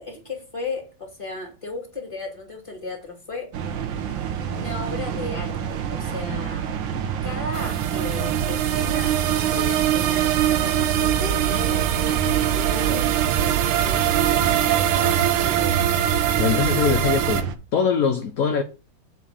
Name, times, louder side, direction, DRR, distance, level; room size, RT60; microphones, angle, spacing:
voice 1, 0.0-3.5 4.5-6.7 7.2-15.9, left 2 dB, 15° left, 3.2 m, -35 dB
sound 1, 3.5-17.5, right 8 dB, 70° right, 1.6 m, -27 dB
sound 2, 7.5-17.4, right 11 dB, 85° right, 1.6 m, -23 dB
voice 2, 16.4-18.6, left 6 dB, 55° left, 1.1 m, -22 dB
7.8 x 4.6 x 7.2 m
omnidirectional pair, 2.3 m